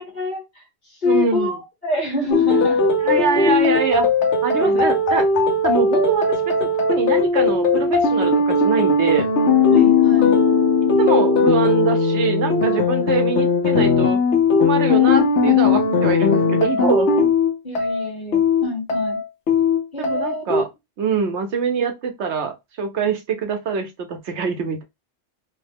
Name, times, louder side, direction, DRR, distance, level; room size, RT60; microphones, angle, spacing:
voice 1, 0.0-2.9 3.4-3.5 4.6-4.8 9.7-10.4 13.0-13.1 15.8-16.0 17.2-17.3 17.6-19.2 19.9-20.4, left 2 dB, 45° left, 1.3 m, -27 dB
voice 2, 1.0-1.6 3.0-4.1 4.4-5.3 5.6-9.3 11.0-14.2 14.6-17.1 20.0-20.7 21.0-24.8, right 5 dB, 85° right, 1.0 m, -24 dB
sound 1, 2.3-20.6, left 4 dB, 85° left, 1.1 m, -18 dB
3.0 x 2.1 x 3.3 m
omnidirectional pair, 1.1 m